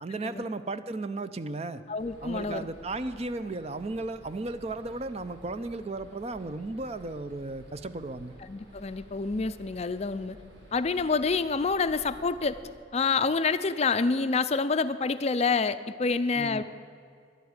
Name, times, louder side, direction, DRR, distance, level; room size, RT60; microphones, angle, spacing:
voice 1, 0.0-1.8 2.2-8.4 16.4-16.6, right 2 dB, 35° right, 12 dB, 0.5 m, -35 dB
voice 2, 1.9-2.7 8.5-10.4 10.7-12.6 12.9-16.6, left 4 dB, 35° left, 12 dB, 0.4 m, -27 dB
sound 1, 2.0-12.7, equal, 70° right, 3.4 m, -52 dB
11.5 x 8.2 x 9.6 m, 2.3 s
head